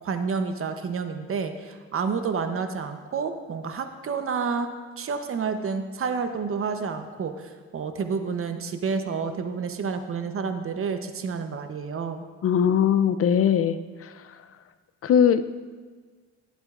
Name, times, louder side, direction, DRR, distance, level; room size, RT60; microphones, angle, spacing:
voice 1, 0.0-4.7 5.0-12.2, right 5 dB, 45° right, 7 dB, 0.9 m, -29 dB
voice 2, 12.4-14.1 15.0-15.7, left 8 dB, 50° left, 12 dB, 0.5 m, -21 dB
16.0 x 7.9 x 2.5 m, 1.4 s
cardioid pair, 90°, 30 cm